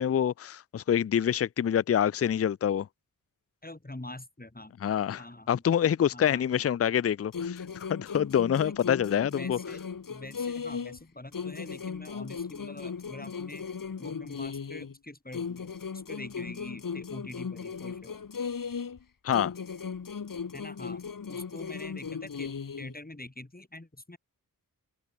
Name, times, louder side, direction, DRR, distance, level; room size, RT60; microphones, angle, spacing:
voice 1, 0.0-2.9 4.8-9.6 19.2-19.5, left 9 dB, 40° left, 0.4 m, -26 dB
voice 2, 3.6-4.7 5.2-5.5 6.1-6.5 8.6-8.8 9.2-13.6 14.0-18.2 20.5-21.0 21.3-22.5 22.8-24.2, left 2 dB, 25° left, 7.2 m, -45 dB
sound 1, 7.3-11.0 11.3-15.0 15.3-19.0 19.3-23.0, left 6 dB, 65° left, 1.4 m, -37 dB
wide cardioid pair, 75°, 36 cm